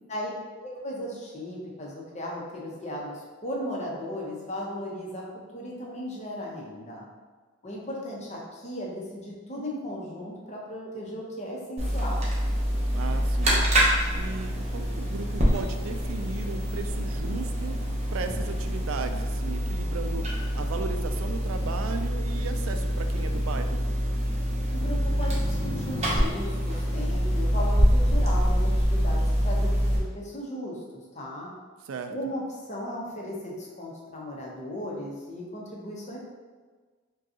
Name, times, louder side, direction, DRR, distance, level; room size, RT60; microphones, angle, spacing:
voice 1, 0.6-5.2 5.5-7.0 7.6-12.2 24.7-31.5 32.1-36.2, equal, 35° left, -3 dB, 0.7 m, -36 dB
sound 1, 11.8-30.0, equal, 30° right, 0.7 m, -26 dB
voice 2, 12.9-13.6 14.1-17.8 18.1-20.3 20.5-23.8 31.9-32.1, right 4 dB, 75° right, 7 dB, 0.4 m, -36 dB
5.1 x 2.3 x 2.8 m, 1.4 s
head